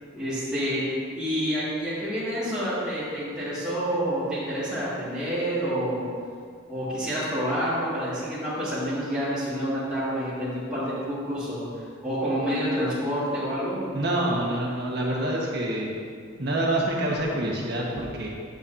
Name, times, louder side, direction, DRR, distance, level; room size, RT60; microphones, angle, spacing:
voice 1, 0.1-0.8 1.2-6.1 6.7-13.8, equal, 5° right, -16 dB, 2.3 m, -28 dB
voice 2, 13.9-15.9 16.4-18.3, right 1 dB, 55° right, -3 dB, 1.6 m, -26 dB
11.0 x 7.9 x 2.9 m, 2.2 s
head